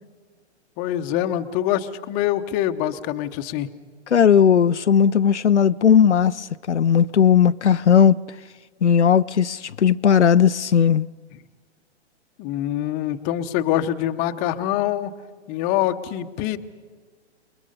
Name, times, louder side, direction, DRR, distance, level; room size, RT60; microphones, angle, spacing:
voice 1, 0.8-3.7 12.4-15.2 15.5-16.6, left 12 dB, 25° left, 0.9 m, -24 dB
voice 2, 4.1-8.2 8.8-11.1, left 8 dB, 85° left, 0.6 m, -17 dB
28.5 x 21.5 x 5.4 m
figure-of-eight pair, 120°, 34 cm